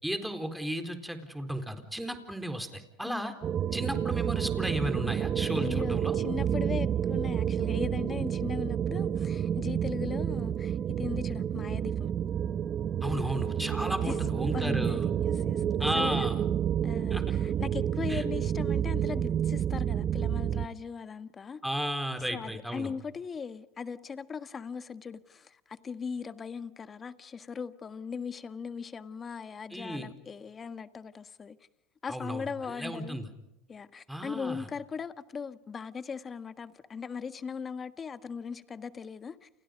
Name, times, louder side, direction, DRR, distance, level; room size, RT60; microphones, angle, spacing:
voice 1, 0.0-3.3 3.7-6.1 13.0-15.1 15.8-16.4 17.1-17.2 18.1-18.2 21.6-22.9 29.7-30.1 32.1-32.4 32.8-33.3 34.1-34.7, equal, ahead, 4.1 m, -34 dB
voice 2, 3.0-3.4 5.6-12.1 14.0-16.3 16.8-21.6 22.3-31.6 32.0-33.2 33.7-39.5, left 6 dB, 25° left, 1.5 m, -39 dB
sound 1, 3.4-20.7, right 9 dB, 35° right, 1.0 m, -30 dB
29.5 x 29.0 x 5.3 m
supercardioid pair, 105°, 0 cm